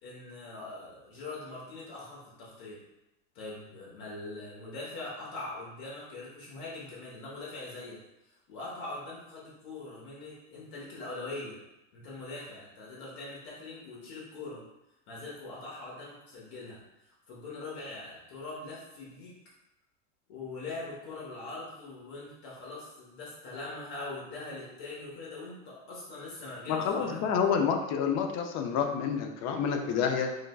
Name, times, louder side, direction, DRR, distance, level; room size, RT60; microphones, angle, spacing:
voice 1, 0.0-2.8 3.3-8.0 8.2-11.6 11.9-14.6 15.1-19.3 20.3-27.3, left 2 dB, 65° left, -5 dB, 1.2 m, -42 dB
voice 2, 26.7-30.4, left 7 dB, 40° left, 5 dB, 0.5 m, -28 dB
4.7 x 2.2 x 2.3 m, 0.91 s
supercardioid pair, 120°, 41 cm